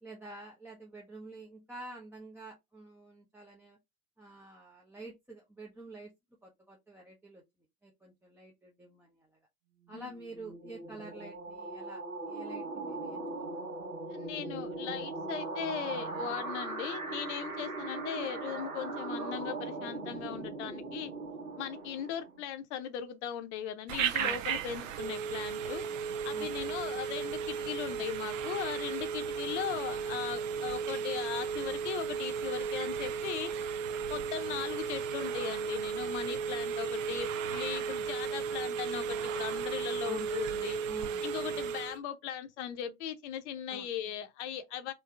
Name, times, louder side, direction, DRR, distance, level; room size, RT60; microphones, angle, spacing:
voice 1, 0.0-3.8 4.2-6.1 6.4-7.4 7.8-9.4 9.9-13.6 24.2-24.6 26.3-26.6 40.0-40.3 40.9-41.4 43.7-43.9, right 2 dB, 5° right, 0.5 m, -48 dB
sound 1, 9.8-22.5, right 3 dB, 80° right, 1.4 m, -39 dB
voice 2, 14.1-21.1 21.6-25.8 26.2-33.5 34.1-40.8 41.2-44.9, left 9 dB, 50° left, 0.7 m, -38 dB
Telephone, 23.9-42.0, right 6 dB, 60° right, 0.7 m, -35 dB
3.2 x 2.8 x 3.3 m
figure-of-eight pair, 90°, 44 cm